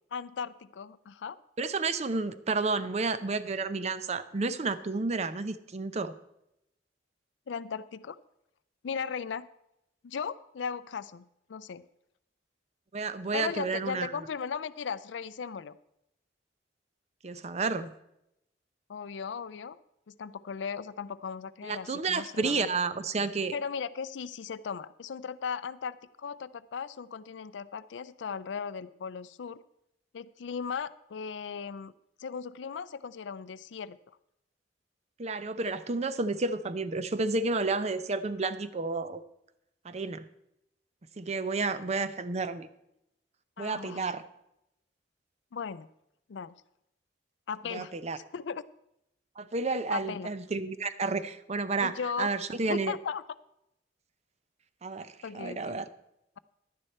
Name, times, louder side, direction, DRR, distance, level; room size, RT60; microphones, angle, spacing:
voice 1, 0.1-1.4 7.5-8.2 8.8-9.5 10.0-11.8 13.3-15.8 18.9-19.8 20.1-22.7 23.5-29.6 30.1-31.9 32.2-34.0 43.6-44.1 45.5-45.9 46.3-46.5 47.5-47.9 48.3-48.6 49.9-50.3 51.8-52.3 52.6-53.2 55.2-55.8, left 6 dB, 80° left, 16 dB, 0.4 m, -37 dB
voice 2, 1.6-6.1 12.9-14.1 17.2-17.9 21.6-23.6 35.2-39.2 39.8-40.2 41.2-42.7 43.6-44.2 47.7-48.2 49.4-52.9 54.8-55.9, right 3 dB, 40° right, 13 dB, 0.6 m, -31 dB
11.0 x 9.7 x 4.3 m, 0.82 s
head